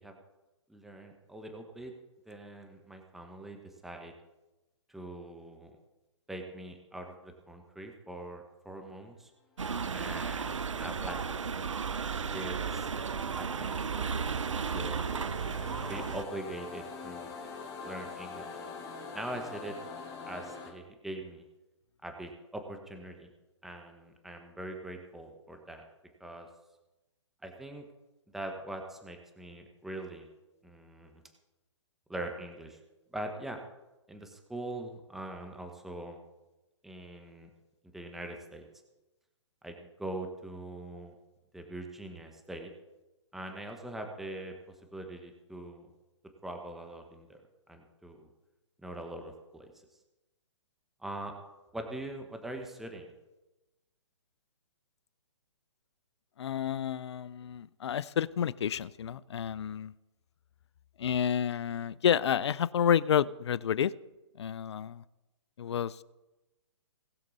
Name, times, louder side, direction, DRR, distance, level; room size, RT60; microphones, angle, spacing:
voice 1, 0.7-1.9 2.3-4.1 4.9-5.7 6.3-9.3 9.9-11.2 12.3-12.9 13.4-14.1 14.7-15.1 15.9-17.3 17.8-18.6 19.1-19.8 20.3-21.4 22.0-23.3 23.6-25.9 26.2-26.5 27.4-27.8 28.3-30.3 30.6-31.2 32.1-32.8 33.1-33.6 34.1-36.2 36.8-37.5 37.9-38.6 39.6-41.1 41.5-42.7 43.3-44.5 44.9-45.9 46.4-47.4 47.7-48.3 48.8-49.7 51.0-51.4 51.7-53.1, right 1 dB, ahead, 3 dB, 1.1 m, -42 dB
sound 1, 9.6-16.2, right 6 dB, 85° right, 0.6 m, -34 dB
sound 2, 10.3-20.7, left 4 dB, 25° left, 2.4 m, -45 dB
voice 2, 56.4-59.9 61.0-63.9 64.4-65.0 65.6-66.0, left 9 dB, 65° left, 20 dB, 0.5 m, -30 dB
19.0 x 6.5 x 4.1 m, 1.0 s
hypercardioid pair, 135°, 16 cm